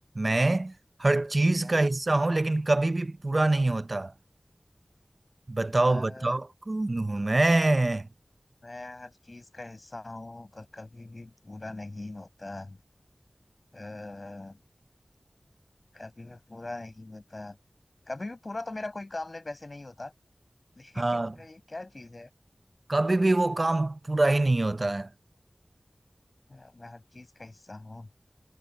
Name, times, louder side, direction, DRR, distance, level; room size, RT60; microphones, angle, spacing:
voice 1, 0.2-0.7 1.0-4.1 5.5-8.1 21.0-21.3 22.9-25.1, right 2 dB, 55° right, 0.5 m, -25 dB
voice 2, 1.4-1.7 5.8-6.4 8.6-12.8 13.7-14.6 15.9-17.6 18.1-20.1 20.8-22.3 26.5-28.1, left 2 dB, 60° left, 6.5 m, -41 dB
wide cardioid pair, 45°, 0 cm